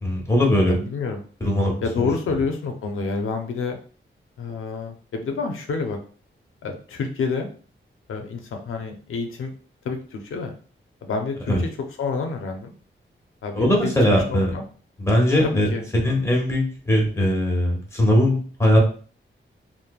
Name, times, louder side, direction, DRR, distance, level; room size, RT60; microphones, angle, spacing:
voice 1, 0.0-0.7 1.4-2.1 11.5-11.6 13.5-14.5 15.0-18.8, left 1 dB, 15° left, -1 dB, 1.0 m, -20 dB
voice 2, 0.6-1.2 1.8-3.8 4.4-6.0 6.6-7.5 8.1-9.5 9.8-10.5 11.0-11.7 12.0-12.7 13.4-13.9 14.3-14.6 15.4-15.9, left 4 dB, 80° left, 4 dB, 0.4 m, -28 dB
3.1 x 2.0 x 2.3 m, 0.41 s
cardioid pair, 80°, 21 cm